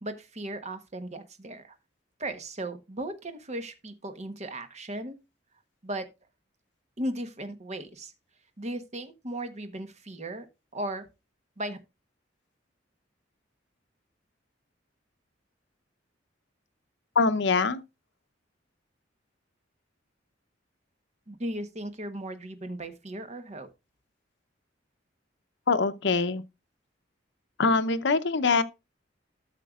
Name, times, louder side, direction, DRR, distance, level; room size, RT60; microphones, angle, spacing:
voice 1, 0.0-1.7 2.2-5.2 5.8-6.1 7.0-8.1 8.6-10.5 10.7-11.1 11.6-11.8 21.3-23.7, right 1 dB, 35° right, 1.1 m, -36 dB
voice 2, 17.2-17.8 25.7-26.4 27.6-28.6, left 4 dB, 65° left, 0.8 m, -23 dB
13.0 x 6.5 x 2.4 m
head